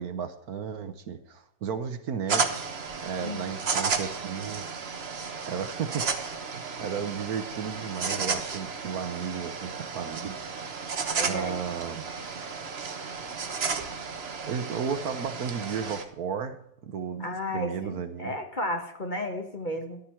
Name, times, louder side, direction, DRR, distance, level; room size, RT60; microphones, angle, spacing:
voice 1, 0.0-2.7 3.0-4.6 5.5-10.3 11.2-12.1 13.1-13.3 14.4-18.3, right 7 dB, 65° right, 10 dB, 1.3 m, -34 dB
sound 1, 2.3-16.0, right 5 dB, 40° right, 1.2 m, -33 dB
voice 2, 11.2-11.6 17.2-20.0, left 1 dB, 30° left, 4 dB, 1.3 m, -33 dB
14.0 x 11.5 x 4.5 m, 0.74 s
omnidirectional pair, 1.8 m